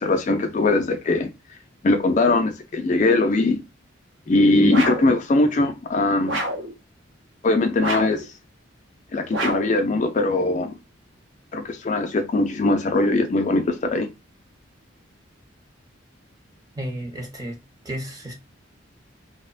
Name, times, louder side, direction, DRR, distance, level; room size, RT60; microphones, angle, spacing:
voice 1, 0.0-1.3 1.8-3.6 4.3-6.4 7.4-8.3 9.1-10.8 11.5-14.1, left 2 dB, 35° left, 0.3 m, -21 dB
sound 1, 4.7-5.2 6.3-6.7 7.8-8.3 9.3-9.8, right 1 dB, 70° right, 0.7 m, -27 dB
voice 2, 16.8-17.6 17.8-18.3, right 1 dB, 20° right, 0.5 m, -32 dB
2.8 x 2.0 x 2.3 m
head